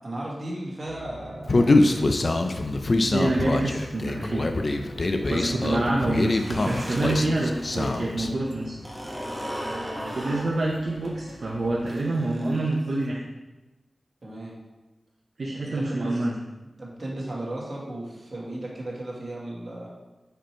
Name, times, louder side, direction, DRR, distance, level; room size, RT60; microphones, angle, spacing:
voice 1, 0.0-2.2 5.2-5.7 9.7-10.2 14.2-14.6 15.4-16.3 16.8-19.9, right 1 dB, 45° right, -4 dB, 1.6 m, -36 dB
sound 1, 0.8-11.9, equal, 75° left, 1.1 m, -42 dB
Human voice, 1.5-8.3, left 2 dB, 45° left, 0.4 m, -24 dB
voice 2, 3.1-4.5 5.1-8.8 10.1-13.2 15.4-16.4, right 2 dB, 65° right, -3 dB, 0.7 m, -27 dB
sound 2, 6.2-8.0 8.3-13.1, equal, ahead, 1.2 m, -37 dB
5.1 x 4.4 x 4.5 m, 1.1 s
wide cardioid pair, 100°, 0 cm